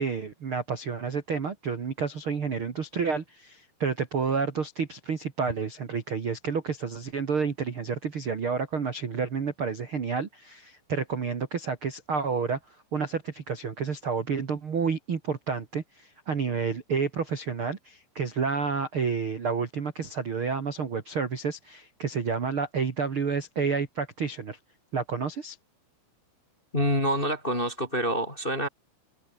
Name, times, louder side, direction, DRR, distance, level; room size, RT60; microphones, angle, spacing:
voice 1, 0.0-12.6 12.9-24.6 24.9-25.6, right 5 dB, 65° right, 1.3 m, -30 dB
voice 2, 26.7-28.7, equal, 15° left, 2.3 m, -27 dB
omnidirectional pair, 5.9 m